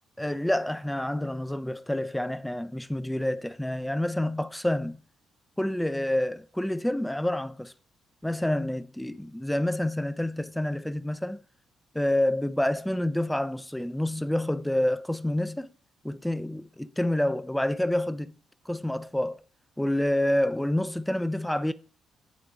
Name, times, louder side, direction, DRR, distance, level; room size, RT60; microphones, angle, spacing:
voice 1, 0.2-5.0 5.6-7.7 8.2-11.4 11.9-15.7 16.0-18.4 18.7-19.4 19.8-21.7, left 1 dB, 5° left, 0.4 m, -28 dB
10.0 x 4.6 x 2.5 m
figure-of-eight pair, 40°, 0 cm